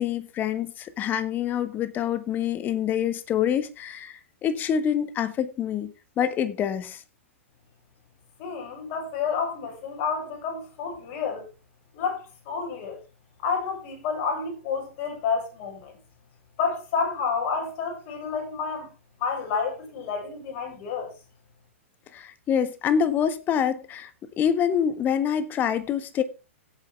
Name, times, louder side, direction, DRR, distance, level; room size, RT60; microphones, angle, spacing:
voice 1, 0.0-7.0 22.1-24.1 24.4-26.2, left 8 dB, 25° left, 1.6 m, -26 dB
voice 2, 8.4-11.5 11.9-13.0 13.4-16.0 16.6-18.9 19.2-21.1, left 5 dB, 40° left, 6.9 m, -29 dB
17.0 x 8.9 x 3.4 m
figure-of-eight pair, 110°, 7 cm